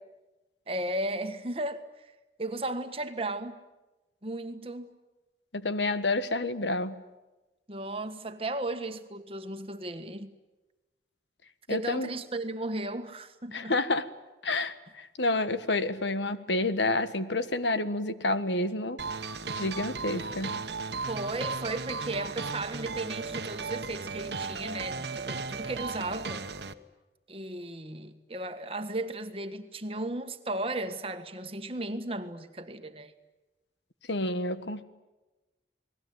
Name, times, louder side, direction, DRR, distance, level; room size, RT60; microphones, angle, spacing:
voice 1, 0.7-2.1 2.4-3.6 4.2-4.9 7.7-10.3 11.7-13.8 21.1-26.5 27.3-33.1, right 2 dB, 30° right, 1.6 m, -35 dB
voice 2, 5.5-7.0 11.7-12.1 13.5-14.1 14.4-19.0 19.5-20.6 34.1-34.8, left 2 dB, 90° left, 1.5 m, -29 dB
sound 1, 19.0-26.7, right 4 dB, 75° right, 1.3 m, -36 dB
29.0 x 20.0 x 9.5 m
head